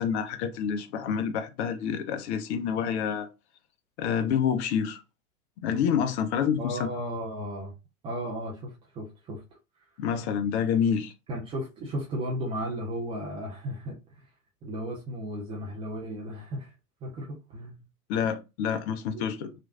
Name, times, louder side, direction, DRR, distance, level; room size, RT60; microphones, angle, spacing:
voice 1, 0.0-3.3 4.0-5.0 5.6-6.9 10.0-11.1 18.1-19.6, left 7 dB, 45° left, 0.6 m, -28 dB
voice 2, 6.6-7.7 8.0-9.4 11.3-14.0 14.6-16.7 17.0-17.8 19.1-19.6, equal, 15° right, 0.3 m, -35 dB
3.0 x 2.5 x 2.3 m
hypercardioid pair, 100°, 45 cm